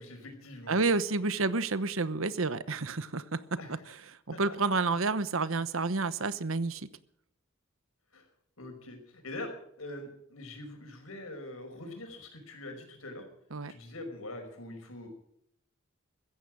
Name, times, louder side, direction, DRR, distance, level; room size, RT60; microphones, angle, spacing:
voice 1, 0.0-0.8 1.4-1.5 3.6-3.8 4.3-4.6 8.1-8.3 8.6-13.2 13.7-15.1, left 1 dB, 90° left, 5 dB, 5.4 m, -43 dB
voice 2, 0.7-3.4 4.3-6.9 13.5-13.7, right 3 dB, 75° right, 15 dB, 1.0 m, -29 dB
15.5 x 14.5 x 6.2 m, 0.71 s
head